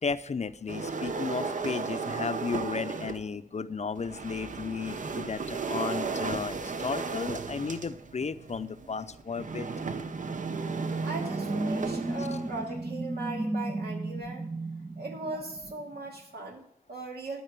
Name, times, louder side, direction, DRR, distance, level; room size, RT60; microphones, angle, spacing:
voice 1, 0.0-9.7 12.2-12.3, left 5 dB, 45° left, 12 dB, 0.6 m, -34 dB
sound 1, 0.7-3.3 3.9-12.8, right 4 dB, 55° right, 0.7 m, -35 dB
sound 2, 9.5-16.0, right 2 dB, 15° right, 0.5 m, -34 dB
voice 2, 11.0-14.5 15.0-17.4, right 2 dB, 90° right, -1 dB, 2.5 m, -39 dB
12.5 x 4.8 x 8.1 m, 0.72 s
wide cardioid pair, 85°, 16 cm